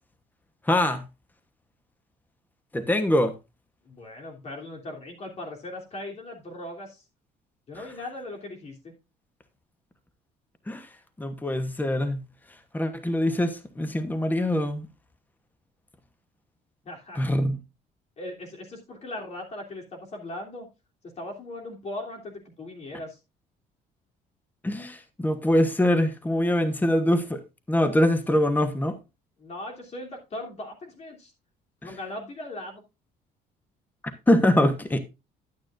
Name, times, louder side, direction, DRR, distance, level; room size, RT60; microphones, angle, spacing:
voice 1, 0.7-1.0 2.7-3.3 10.7-10.9 11.2-12.2 12.7-14.9 17.2-17.6 24.6-27.4 27.7-29.0 34.3-35.0, left 1 dB, 10° left, 1.1 m, -23 dB
voice 2, 3.8-7.0 7.7-8.9 16.8-17.3 18.2-20.7 21.2-23.2 29.4-31.3 31.8-32.8, left 1 dB, 40° left, 3.2 m, -39 dB
11.5 x 9.1 x 2.6 m
cardioid pair, 105°, 17 cm